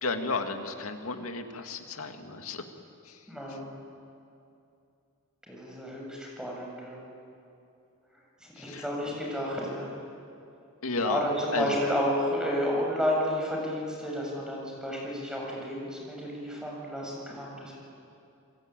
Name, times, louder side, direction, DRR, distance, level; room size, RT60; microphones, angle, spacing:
voice 1, 0.0-2.6 3.1-3.2 8.6-8.8 10.8-11.2 11.5-11.8, left 3 dB, 85° left, 5 dB, 2.3 m, -33 dB
voice 2, 3.3-3.7 5.5-7.0 8.4-9.9 11.0-17.7, equal, 5° right, -2 dB, 7.3 m, -31 dB
28.5 x 21.5 x 9.1 m, 2.6 s
head